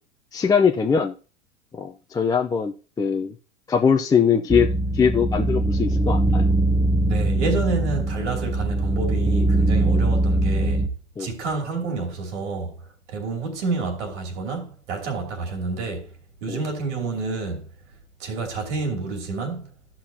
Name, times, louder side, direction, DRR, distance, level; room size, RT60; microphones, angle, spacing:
voice 1, 0.3-1.1 1.7-3.3 3.7-4.7 4.9-6.5 11.2-11.3 16.5-16.6, left 6 dB, 10° left, 0.5 m, -21 dB
sound 1, 4.5-10.9, right 2 dB, 5° right, 1.0 m, -21 dB
voice 2, 7.1-10.9 11.2-12.8 13.1-16.1 16.4-17.7 18.2-19.7, right 3 dB, 70° right, 2.9 m, -28 dB
14.0 x 5.9 x 2.8 m
hypercardioid pair, 100°, 36 cm